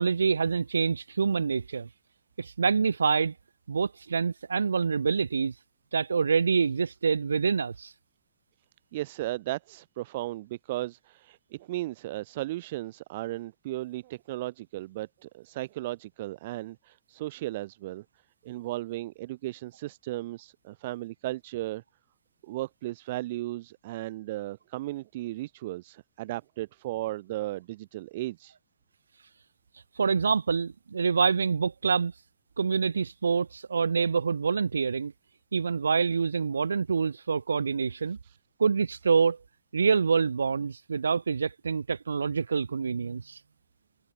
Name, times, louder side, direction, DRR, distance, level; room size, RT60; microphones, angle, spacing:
voice 1, 0.0-1.9 2.4-3.3 3.7-5.5 5.9-7.9 30.0-32.1 32.6-35.1 35.5-38.2 38.6-39.4 39.7-43.4, right 5 dB, 75° right, 0.9 m, -26 dB
voice 2, 8.9-18.0 18.4-21.8 22.4-28.6 38.2-38.4, right 17 dB, 55° right, 0.3 m, -35 dB
figure-of-eight pair, 90°, 0 cm